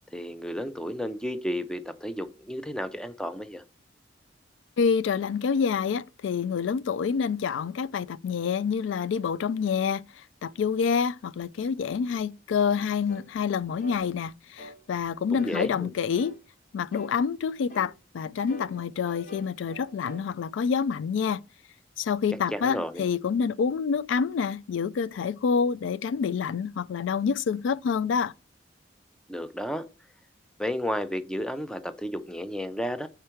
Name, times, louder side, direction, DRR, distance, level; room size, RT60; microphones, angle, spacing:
voice 1, 0.1-3.6 15.3-15.9 22.5-23.0 29.3-29.8 30.6-33.1, equal, 5° left, 0.4 m, -32 dB
voice 2, 4.8-10.0 10.4-16.4 16.7-21.4 22.0-28.3, left 6 dB, 85° left, 0.3 m, -27 dB
sound 1, 13.1-13.3 13.8-14.0 14.6-14.8 15.3-15.6 16.1-16.4 16.9-17.2 17.7-17.9 18.5-20.3, equal, 45° left, 0.9 m, -45 dB
4.8 x 4.5 x 4.4 m
head